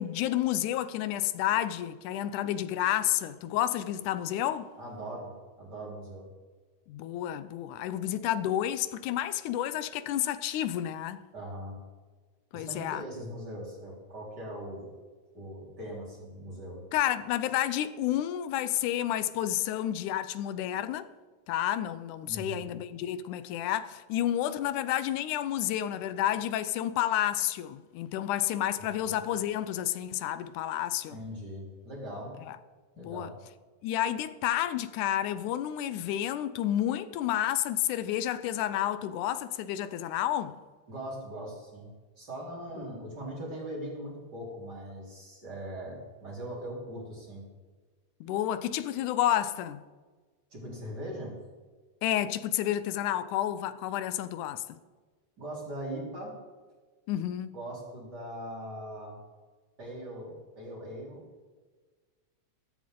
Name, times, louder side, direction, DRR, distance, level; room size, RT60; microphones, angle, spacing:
voice 1, 0.0-4.7 6.9-11.3 12.5-13.0 16.9-21.1 21.5-31.2 32.5-32.6 33.0-33.3 33.8-40.6 42.8-42.9 48.2-49.8 52.0-54.8 57.1-57.6, left 12 dB, 85° left, 2.1 m, -30 dB
voice 2, 4.8-5.3 5.6-6.3 11.3-11.8 12.5-14.9 15.3-16.8 22.2-22.7 28.8-29.2 31.1-32.4 32.9-33.3 40.9-41.9 42.2-47.4 50.5-51.4 55.4-56.4 57.5-59.2 59.8-61.2, right 1 dB, 30° right, 4.2 m, -40 dB
14.5 x 14.0 x 3.8 m
omnidirectional pair, 3.5 m